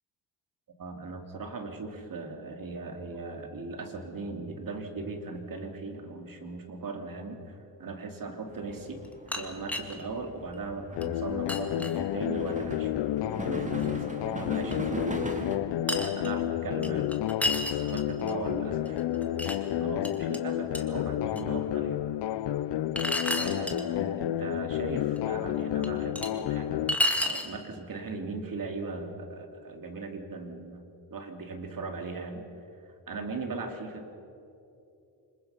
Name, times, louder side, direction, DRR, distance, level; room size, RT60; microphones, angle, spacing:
voice 1, 0.8-9.0 9.3-12.9 13.4-15.2 15.9-17.1 17.6-22.0 23.3-26.9 27.2-32.4 33.1-34.2, right 3 dB, 50° right, 4 dB, 3.1 m, -38 dB
sound 1, 8.5-15.6, right 2 dB, 15° right, 2.5 m, -40 dB
sound 2, 9.0-10.0 10.5-10.6 11.0-11.1 11.5-12.0 13.8-13.9 14.7-14.8 15.9-16.3 16.8-18.3 18.9-19.6 20.0-20.4 20.7-20.8 21.4-21.5 23.0-23.8 25.2-25.3 25.8-26.3 26.9-27.5, left 1 dB, 5° left, 2.2 m, -30 dB
sound 3, 11.0-27.0, left 13 dB, 75° left, 0.7 m, -30 dB
26.0 x 22.0 x 5.8 m, 2.7 s
cardioid pair, 85°, 42 cm